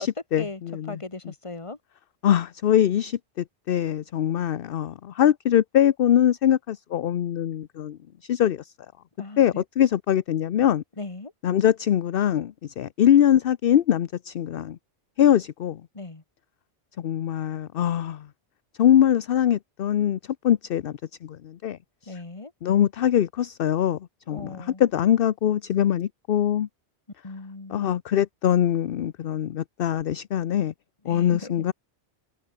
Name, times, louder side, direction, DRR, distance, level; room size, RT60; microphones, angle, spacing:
voice 1, 0.0-1.0 2.2-3.2 3.7-8.0 8.2-8.7 9.4-10.8 11.4-14.8 15.2-15.8 17.0-18.2 18.8-20.2 20.4-20.9 21.2-21.8 22.1-22.2 22.6-24.0 24.3-26.7 27.7-30.7 31.1-31.7, left 10 dB, 60° left, 0.8 m, -22 dB
voice 2, 0.9-1.8 9.2-9.6 11.0-11.3 15.9-16.2 22.1-22.5 24.3-24.8 27.2-27.9 31.0-31.5, left 3 dB, 30° left, 1.8 m, -38 dB
omnidirectional pair, 1.1 m